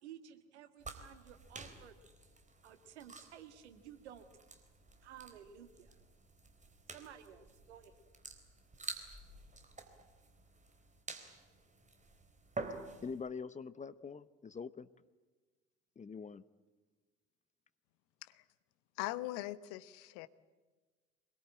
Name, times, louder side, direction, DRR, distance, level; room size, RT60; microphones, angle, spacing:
voice 1, 0.0-2.0 2.6-4.3 5.0-6.0 6.9-8.0, right 9 dB, 75° right, 9 dB, 1.9 m, -54 dB
sound 1, 0.8-13.2, right 3 dB, 20° right, 3.9 m, -50 dB
voice 2, 13.0-14.9 16.0-16.4, left 5 dB, 20° left, 15 dB, 0.9 m, -44 dB
voice 3, 19.0-20.3, left 16 dB, 60° left, 15 dB, 1.1 m, -41 dB
24.5 x 21.5 x 8.9 m, 1.3 s
figure-of-eight pair, 60°, 35 cm